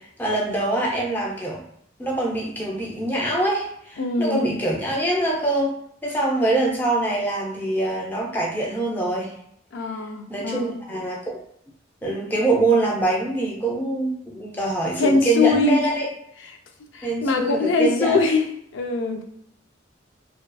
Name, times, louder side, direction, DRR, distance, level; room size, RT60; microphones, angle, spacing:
voice 1, 0.0-1.6 2.0-5.8 6.0-9.3 10.3-11.4 12.0-16.1 17.0-18.2, right 2 dB, 10° left, -3 dB, 0.5 m, -24 dB
voice 2, 4.0-4.6 9.7-10.8 15.0-15.9 16.9-18.5 18.7-19.2, left 3 dB, 75° left, 3 dB, 0.4 m, -22 dB
2.6 x 2.3 x 2.2 m, 0.71 s
head